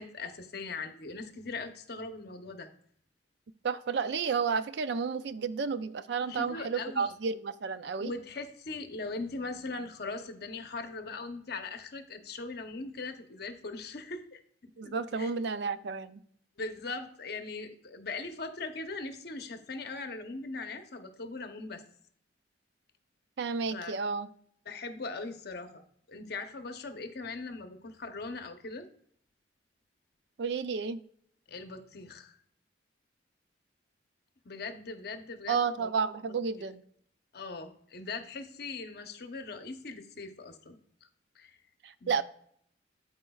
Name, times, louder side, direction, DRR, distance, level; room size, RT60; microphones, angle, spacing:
voice 1, 0.0-2.7 6.3-7.1 8.0-14.4 14.8-15.3 16.6-21.8 23.7-24.0 24.7-25.8 26.1-28.9 31.5-32.4 34.4-35.9 37.3-40.8 41.4-41.6 42.0-42.2, left 3 dB, 60° left, 7 dB, 0.8 m, -40 dB
voice 2, 3.6-8.1 14.8-16.2 23.4-24.3 30.4-31.0 35.5-36.8 41.8-42.2, right 5 dB, 65° right, 13 dB, 0.4 m, -31 dB
13.0 x 4.4 x 2.3 m, 0.66 s
head